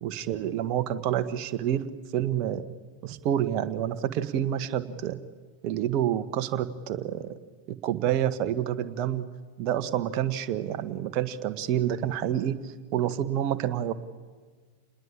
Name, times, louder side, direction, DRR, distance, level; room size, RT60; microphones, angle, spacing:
voice 1, 0.0-1.9 2.1-2.6 3.0-5.2 5.6-7.4 7.7-9.3 9.6-13.9, right 10 dB, 40° right, 10 dB, 1.5 m, -28 dB
28.0 x 20.5 x 8.8 m, 1.5 s
figure-of-eight pair, 90°, 0 cm